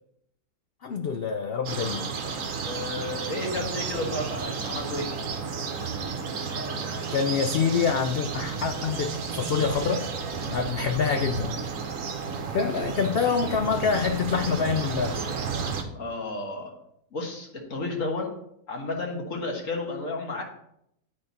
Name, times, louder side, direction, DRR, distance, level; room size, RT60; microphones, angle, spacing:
voice 1, 0.8-2.1 7.1-10.1 10.5-11.5 12.5-15.3, left 6 dB, 85° left, 6 dB, 0.5 m, -26 dB
sound 1, 1.6-15.8, right 5 dB, 60° right, 1.2 m, -32 dB
voice 2, 2.6-5.1 15.9-16.7 17.1-18.3 18.7-20.4, left 2 dB, 55° left, 0 dB, 1.8 m, -32 dB
11.0 x 4.3 x 4.1 m, 0.74 s
omnidirectional pair, 1.6 m